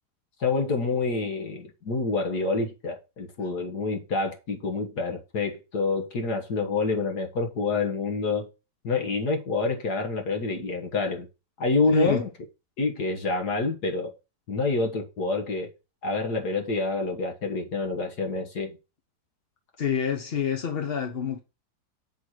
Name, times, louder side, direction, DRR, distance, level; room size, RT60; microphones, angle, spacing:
voice 1, 0.4-8.5 8.8-11.3 11.6-12.3 12.8-14.1 14.5-15.7 16.0-18.8, left 3 dB, 70° left, 2.0 m, -27 dB
voice 2, 11.9-12.2 19.8-21.4, left 7 dB, 45° left, 0.9 m, -27 dB
7.1 x 4.5 x 6.3 m
omnidirectional pair, 1.8 m